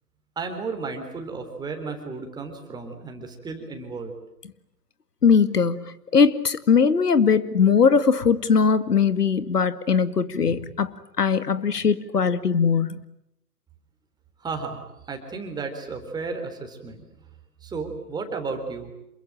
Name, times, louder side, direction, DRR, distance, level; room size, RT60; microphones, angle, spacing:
voice 1, 0.4-4.1 14.4-17.1 17.6-18.9, right 4 dB, 10° right, 5 dB, 3.8 m, -33 dB
voice 2, 5.2-10.9 11.2-13.0, left 6 dB, 70° left, 13 dB, 2.2 m, -20 dB
28.0 x 22.5 x 9.0 m, 0.82 s
figure-of-eight pair, 135°, 48 cm